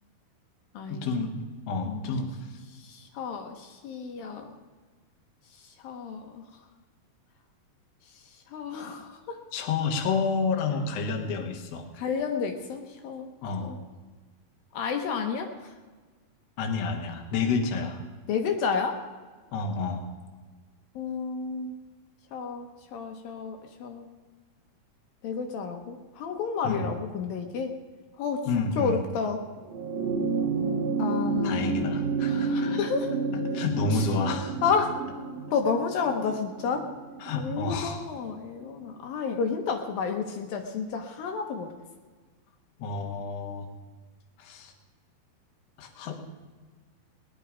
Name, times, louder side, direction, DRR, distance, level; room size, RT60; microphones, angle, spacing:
voice 1, 0.9-2.3 9.5-11.9 13.4-13.7 16.6-18.0 19.5-20.0 26.6-26.9 28.5-29.0 31.4-32.7 33.3-34.6 37.2-38.1 42.8-43.7 44.4-44.7 45.8-46.2, left 4 dB, 55° left, 2 dB, 2.0 m, -29 dB
voice 2, 1.8-2.3 2.8-4.5 5.8-6.4 8.5-9.4 12.0-13.3 13.6-13.8 14.7-15.5 18.3-19.0 21.0-21.7 22.3-24.1 25.2-27.8 28.2-29.4 31.0-31.7 32.3-33.1 33.9-34.1 34.6-35.0 35.5-36.9 37.4-41.7, left 5 dB, 70° left, 4 dB, 2.6 m, -31 dB
sound 1, 29.6-38.3 39.5-39.6, right 4 dB, 60° right, 1.8 m, -30 dB
19.5 x 11.0 x 5.0 m, 1.4 s
omnidirectional pair, 4.6 m